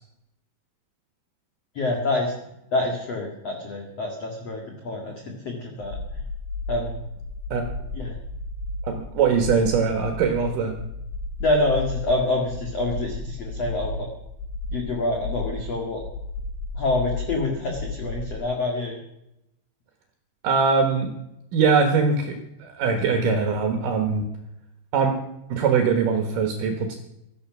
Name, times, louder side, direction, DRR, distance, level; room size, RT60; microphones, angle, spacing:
voice 1, 1.7-2.3 2.7-6.2 6.7-7.0 7.9-8.1 11.4-14.1 14.7-16.0 16.7-19.0, left 2 dB, 45° left, 2 dB, 2.4 m, -26 dB
sound 1, 5.8-18.4, left 3 dB, 80° left, 5.6 m, -34 dB
voice 2, 8.8-10.7 20.4-21.1 21.5-24.3 24.9-25.1 25.5-27.0, right 5 dB, 60° right, 5 dB, 2.5 m, -22 dB
17.0 x 13.0 x 6.1 m, 0.85 s
omnidirectional pair, 5.3 m